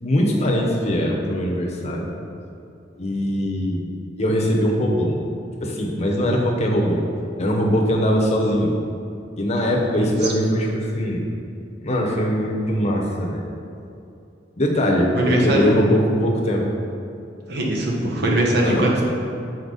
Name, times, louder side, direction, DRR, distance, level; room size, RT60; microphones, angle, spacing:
voice 1, 0.0-2.1 3.0-3.9 4.2-5.2 5.6-7.0 7.4-8.7 9.4-11.2 11.8-13.4 14.6-16.6 18.6-18.8, equal, 35° left, -1 dB, 0.9 m, -21 dB
voice 2, 10.0-10.3 15.2-15.8 17.5-19.0, right 1 dB, 65° right, -2 dB, 1.0 m, -21 dB
6.5 x 4.4 x 4.0 m, 2.7 s
head